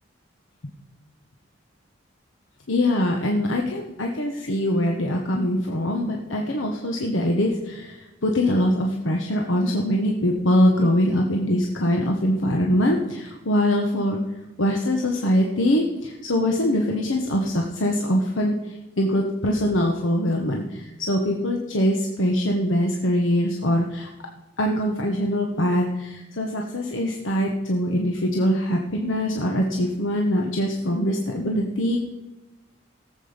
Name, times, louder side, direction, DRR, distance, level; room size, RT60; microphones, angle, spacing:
voice 1, 2.7-14.2 14.6-24.1 24.6-32.0, equal, 80° left, 1 dB, 1.3 m, -23 dB
17.5 x 7.7 x 5.1 m, 1.1 s
head